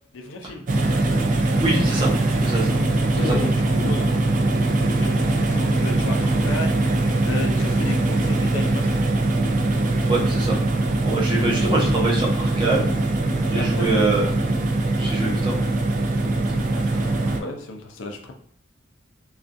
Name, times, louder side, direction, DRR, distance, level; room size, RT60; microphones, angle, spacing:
voice 1, 0.1-0.7 3.0-4.4 4.9-6.8 7.2-9.0 13.5-14.0 14.5-14.6 16.7-18.3, left 2 dB, 80° left, 3 dB, 0.5 m, -34 dB
sound 1, 0.7-17.4, right 2 dB, 40° right, 0.3 m, -22 dB
voice 2, 1.6-2.1 2.4-2.8 3.3-3.5 10.1-10.6 11.0-13.0 13.5-14.3 14.9-15.6, right 2 dB, 25° right, -4 dB, 0.7 m, -24 dB
2.3 x 2.3 x 2.5 m, 0.65 s
head